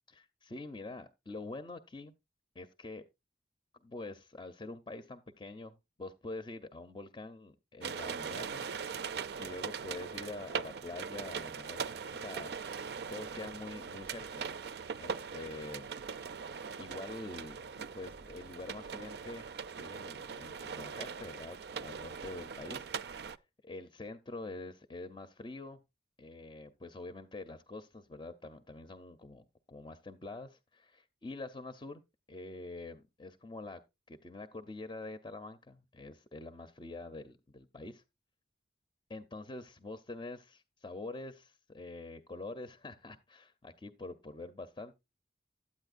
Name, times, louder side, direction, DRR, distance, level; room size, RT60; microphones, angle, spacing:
voice 1, 0.1-2.1 2.5-3.0 3.8-12.5 13.1-14.5 15.0-15.9 16.8-19.5 19.8-22.9 23.1-23.3 23.6-25.8 26.2-32.0 32.3-33.8 34.1-38.0 39.1-44.9, left 2 dB, 25° left, 0.6 m, -46 dB
sound 1, 7.8-23.4, right 6 dB, 60° right, 0.4 m, -41 dB
13.0 x 8.6 x 2.5 m
head